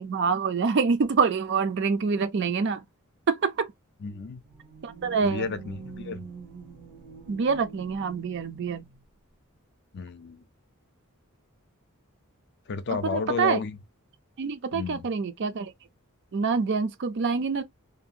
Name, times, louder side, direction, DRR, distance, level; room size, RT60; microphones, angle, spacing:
voice 1, 0.0-2.8 3.3-3.7 4.8-5.5 7.3-8.8 12.9-13.6 14.4-15.7 16.3-17.6, right 5 dB, 50° right, 0.4 m, -26 dB
voice 2, 4.0-4.4 5.2-6.3 9.9-10.4 12.7-13.8 14.7-15.1, left 5 dB, 50° left, 0.4 m, -32 dB
sound 1, 4.2-9.0, right 5 dB, 85° right, 0.9 m, -45 dB
2.6 x 2.4 x 2.8 m
head